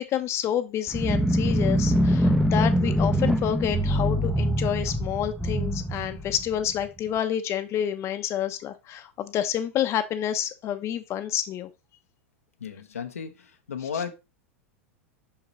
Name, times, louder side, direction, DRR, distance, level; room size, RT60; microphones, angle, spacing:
voice 1, 0.0-11.7, left 10 dB, 40° left, 0.8 m, -29 dB
sound 1, 0.9-6.9, equal, ahead, 0.8 m, -24 dB
voice 2, 12.6-14.1, left 7 dB, 90° left, 0.9 m, -34 dB
5.8 x 5.5 x 3.1 m
hypercardioid pair, 95°, 7 cm